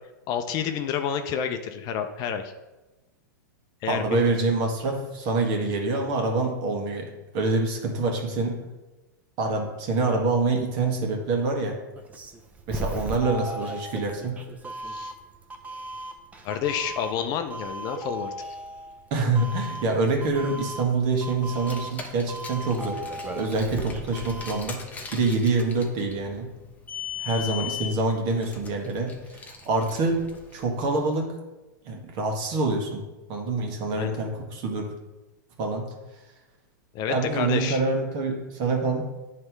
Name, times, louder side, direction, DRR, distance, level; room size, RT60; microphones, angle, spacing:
voice 1, 0.3-2.5 3.8-4.2 14.9-15.1 16.4-18.3 33.9-34.2 36.9-37.8, left 8 dB, 40° left, 7 dB, 0.5 m, -29 dB
voice 2, 3.9-7.1 7.3-8.5 9.4-11.7 12.7-14.4 19.1-23.0 23.3-24.8 25.1-26.5 27.2-30.2 30.5-31.3 31.8-33.0 33.3-34.9 35.6-35.9 37.1-39.0, right 3 dB, 45° right, 2 dB, 1.6 m, -26 dB
Doorbell, 12.0-24.8, right 1 dB, 15° right, 0.7 m, -37 dB
Car, 21.5-31.0, left 8 dB, 15° left, 0.9 m, -39 dB
9.5 x 3.3 x 4.6 m, 1.1 s
hypercardioid pair, 125°, 11 cm